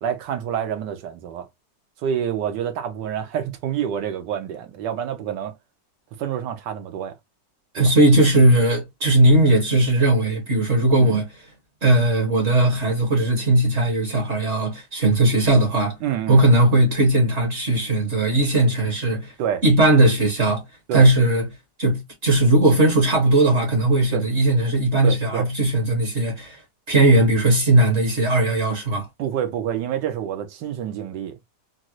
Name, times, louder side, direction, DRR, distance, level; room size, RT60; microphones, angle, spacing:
voice 1, 0.0-1.5 2.0-5.5 6.2-7.1 7.7-7.9 11.0-11.2 16.0-16.4 19.4-19.6 20.9-21.1 24.1-24.2 25.0-25.5 29.2-31.3, right 9 dB, 85° right, 1.4 m, -27 dB
voice 2, 7.7-11.3 11.8-16.0 16.3-19.3 19.6-20.6 20.9-21.5 21.8-26.6 26.9-29.1, right 1 dB, 45° right, 1.3 m, -18 dB
3.9 x 2.0 x 2.9 m
omnidirectional pair, 1.8 m